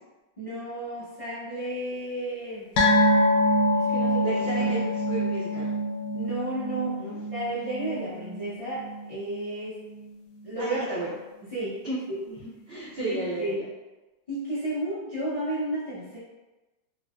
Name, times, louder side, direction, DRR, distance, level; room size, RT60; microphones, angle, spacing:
voice 1, 0.4-2.6 3.8-4.7 6.1-7.0 7.3-9.8 10.4-11.0 11.5-11.8 13.0-13.6 14.3-16.2, right 1 dB, 50° left, -10 dB, 0.3 m, -32 dB
sound 1, 2.8-9.6 9.8-10.1 10.4-10.5, equal, 80° left, 1.3 m, -25 dB
voice 2, 4.2-5.7 7.0-7.2 10.6-11.1 11.8-12.0 12.3-12.4 12.7-13.6, right 1 dB, 80° right, -10 dB, 0.5 m, -33 dB
3.8 x 2.0 x 2.2 m, 1.1 s
omnidirectional pair, 2.0 m